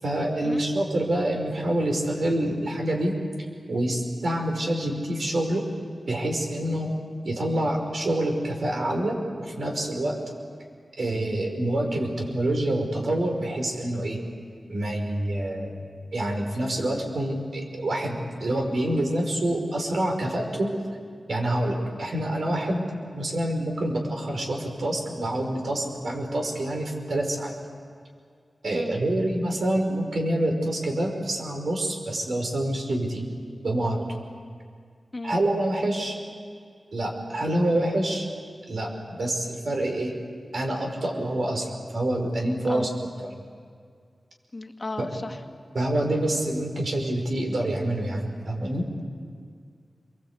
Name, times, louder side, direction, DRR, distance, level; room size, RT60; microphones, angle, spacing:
voice 1, 0.0-3.1 3.7-5.6 6.1-6.9 7.2-10.2 11.0-14.2 14.7-15.8 16.1-20.7 21.3-22.8 23.1-27.5 28.6-33.2 33.6-34.1 35.2-36.2 36.9-38.3 38.7-38.9 39.2-40.1 40.5-42.9 43.2-43.4 45.0-45.1 45.7-48.9, right 1 dB, 70° right, 2 dB, 5.4 m, -27 dB
voice 2, 44.5-45.4, left 2 dB, 35° left, 4 dB, 1.7 m, -35 dB
28.5 x 23.0 x 8.3 m, 2.1 s
wide cardioid pair, 105°, 0 cm